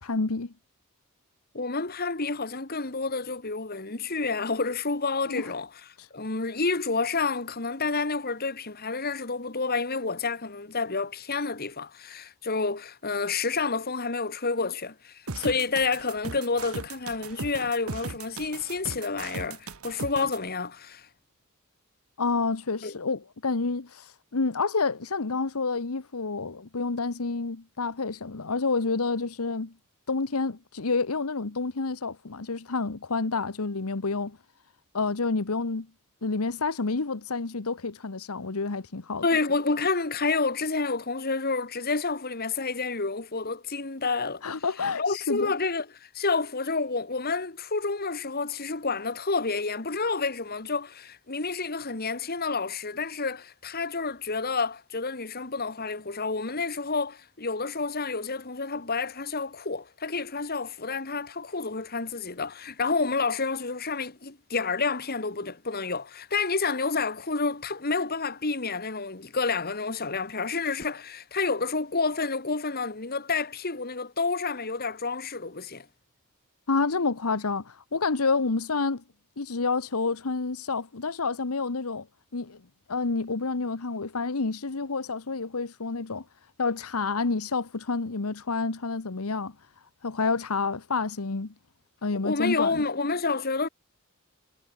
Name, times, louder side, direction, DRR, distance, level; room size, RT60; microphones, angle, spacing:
voice 1, 0.0-0.5 5.3-5.5 6.0-6.1 22.2-29.7 30.1-34.4 34.9-35.9 36.2-39.3 44.4-45.5 76.7-79.0 79.4-82.1 82.3-82.6 82.9-86.2 86.6-89.5 90.0-91.5 92.0-92.8, left 4 dB, 80° left, 1.1 m, -29 dB
voice 2, 1.5-5.7 6.1-21.1 22.8-23.0 39.2-44.4 45.0-75.9 92.1-93.7, left 4 dB, 45° left, 2.0 m, -29 dB
sound 1, 15.3-20.4, right 4 dB, 75° right, 1.2 m, -38 dB
head